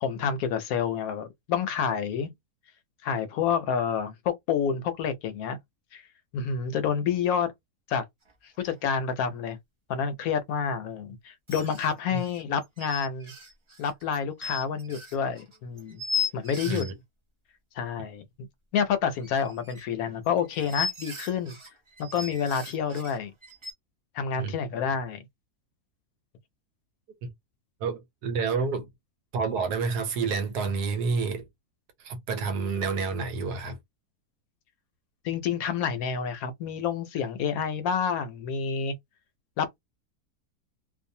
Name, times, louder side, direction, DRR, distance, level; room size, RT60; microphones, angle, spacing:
voice 1, 0.0-2.3 3.0-5.6 5.9-6.0 6.3-7.5 7.9-8.0 8.6-9.6 9.9-13.3 13.8-16.0 16.3-16.8 17.8-18.2 18.7-21.6 22.0-23.3 24.1-25.3 35.2-38.9 39.6-39.8, left 7 dB, 70° left, 1.0 m, -28 dB
sound 1, 8.3-8.4 8.6-8.8 11.5-16.9 19.2-23.7, left 5 dB, 40° right, 0.4 m, -36 dB
voice 2, 27.8-28.9 29.3-31.5 32.0-33.8, right 4 dB, 90° right, 1.3 m, -29 dB
2.5 x 2.3 x 2.6 m
omnidirectional pair, 1.7 m